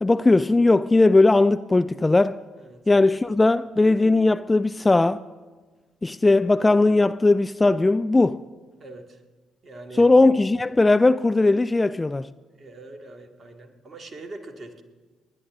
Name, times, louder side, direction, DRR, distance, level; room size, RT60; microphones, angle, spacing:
voice 1, 0.0-2.4 2.9-5.2 6.0-8.4 10.0-12.3, left 2 dB, 20° left, 0.4 m, -18 dB
voice 2, 2.6-2.9 8.8-9.2 9.6-10.1 12.5-14.8, right 2 dB, 40° right, 2.2 m, -42 dB
29.5 x 11.0 x 3.7 m
figure-of-eight pair, 45°, 0 cm